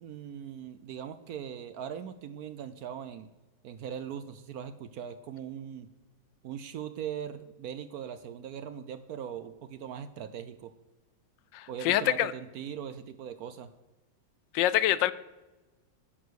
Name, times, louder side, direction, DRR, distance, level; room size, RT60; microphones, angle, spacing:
voice 1, 0.0-3.3 3.6-5.9 6.4-10.7 11.7-13.7, right 9 dB, 65° right, 12 dB, 1.0 m, -40 dB
voice 2, 11.5-12.3 14.5-15.1, left 13 dB, 80° left, 18 dB, 1.3 m, -25 dB
10.0 x 9.6 x 6.3 m, 1.1 s
omnidirectional pair, 2.0 m